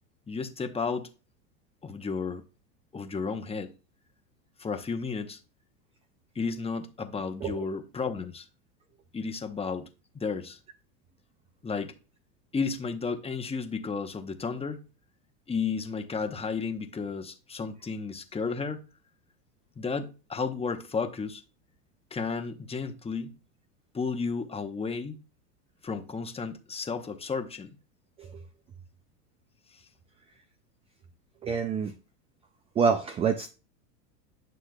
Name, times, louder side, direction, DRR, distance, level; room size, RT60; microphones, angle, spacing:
voice 1, 0.3-1.1 1.8-2.4 2.9-3.7 4.6-5.4 6.3-8.5 9.1-9.9 10.1-10.6 11.6-11.9 12.5-14.8 15.5-18.8 19.8-21.4 22.1-23.4 23.9-25.2 25.8-27.7 29.7-29.8, left 5 dB, 10° left, 0.9 m, -33 dB
voice 2, 31.4-31.9 32.8-33.5, right 6 dB, 15° right, 0.3 m, -26 dB
9.8 x 6.3 x 2.3 m
hypercardioid pair, 110°, 47 cm